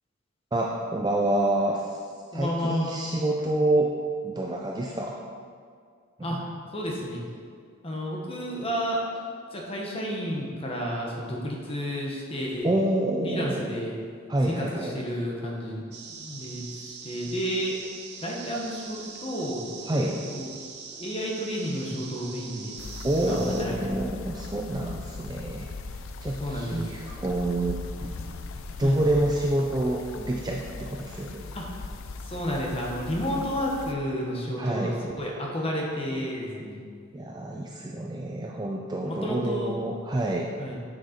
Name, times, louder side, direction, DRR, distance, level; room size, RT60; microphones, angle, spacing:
voice 1, 0.5-2.0 2.3-3.9 4.2-5.2 6.3-6.4 12.6-13.8 14.3-15.0 19.9-20.2 23.0-25.7 26.2-31.4 34.6-35.0 37.1-40.5, right 1 dB, 20° right, -1 dB, 0.4 m, -27 dB
voice 2, 2.3-3.0 6.2-6.4 6.7-7.2 7.8-9.0 9.5-12.7 13.2-14.0 14.5-15.8 16.2-17.8 18.2-20.5 21.0-22.8 23.2-23.9 26.4-26.8 28.8-29.0 31.5-31.6 32.2-36.8 39.0-39.8 40.6-40.8, equal, 25° left, -2 dB, 1.2 m, -31 dB
sound 1, 15.9-23.6, right 5 dB, 50° right, 0.7 m, -42 dB
sound 2, 22.8-33.9, left 3 dB, 80° left, 0.5 m, -39 dB
7.1 x 6.5 x 4.3 m, 2.2 s
head